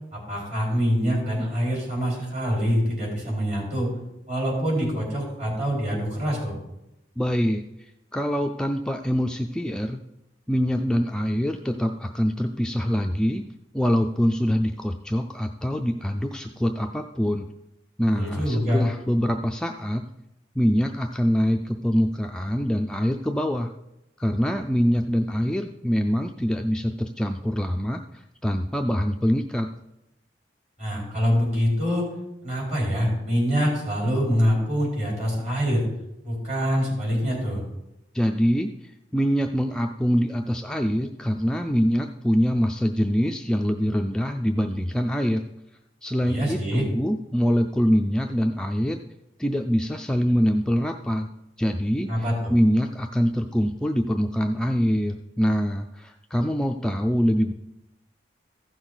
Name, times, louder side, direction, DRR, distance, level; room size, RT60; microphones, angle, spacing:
voice 1, 0.1-3.9 4.3-6.6 18.1-18.8 30.8-32.1 32.4-35.8 36.2-37.6 46.2-46.8 52.1-52.5, equal, 40° right, -3 dB, 4.3 m, -25 dB
voice 2, 7.2-10.0 10.5-13.4 13.7-17.5 18.0-20.0 20.6-23.7 24.2-29.7 38.1-45.4 46.0-49.0 49.4-51.3 51.6-57.5, equal, 5° left, 3 dB, 0.3 m, -24 dB
15.0 x 6.2 x 3.9 m, 0.88 s
head